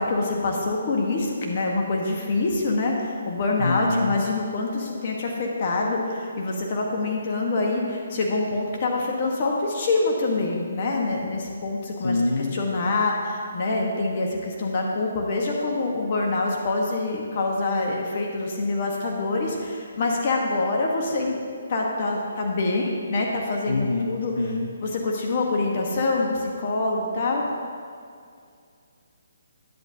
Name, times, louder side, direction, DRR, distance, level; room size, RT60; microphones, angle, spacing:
voice 1, 0.0-12.1 12.5-21.4 21.7-24.3 24.8-27.4, left 2 dB, 45° left, -1 dB, 1.2 m, -25 dB
voice 2, 3.6-4.2 12.0-12.6 23.7-24.7, left 3 dB, 80° left, 0 dB, 0.8 m, -25 dB
10.5 x 8.9 x 2.7 m, 2.3 s
hypercardioid pair, 155°, 0 cm